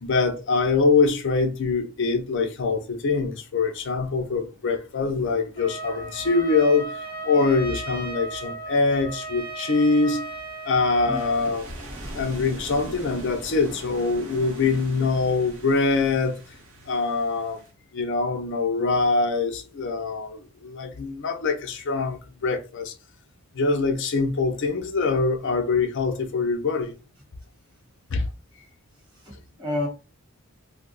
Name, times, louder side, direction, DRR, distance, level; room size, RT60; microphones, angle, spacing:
voice 1, 0.0-10.3 10.7-11.7 12.1-16.4 16.9-17.6 17.9-22.9 23.5-26.9 28.1-28.2, left 4 dB, 60° left, 0.5 m, -24 dB
Trumpet, 5.6-11.4, right 2 dB, 40° right, 0.9 m, -36 dB
Mau U Mae Beach Waves, 9.4-17.7, right 1 dB, 65° right, 1.0 m, -42 dB
voice 2, 29.1-29.9, left 1 dB, 20° right, 1.5 m, -30 dB
2.6 x 2.3 x 3.9 m
head